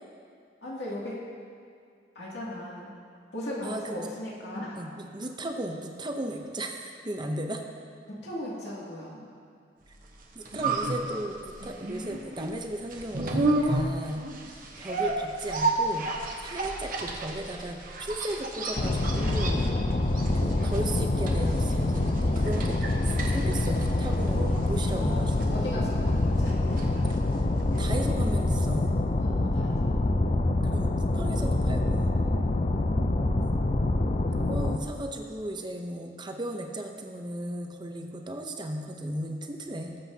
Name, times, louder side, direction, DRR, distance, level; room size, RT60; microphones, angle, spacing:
voice 1, 0.6-1.2 2.1-3.0 3.3-4.8 8.1-9.2 24.8-27.2 29.2-29.8 32.6-33.1, left 1 dB, 60° left, -6 dB, 2.5 m, -38 dB
voice 2, 3.6-4.1 4.8-7.6 10.3-14.2 14.8-16.1 16.4-19.6 20.3-25.7 27.8-29.0 30.6-32.1 33.4-33.7 34.4-40.0, right 1 dB, 25° right, 3 dB, 0.7 m, -35 dB
sound 1, 10.1-28.1 28.3-28.4, right 2 dB, 45° right, 1.1 m, -33 dB
sound 2, 18.8-34.8, left 2 dB, 35° left, 0.5 m, -26 dB
18.5 x 7.8 x 2.8 m, 2.3 s
head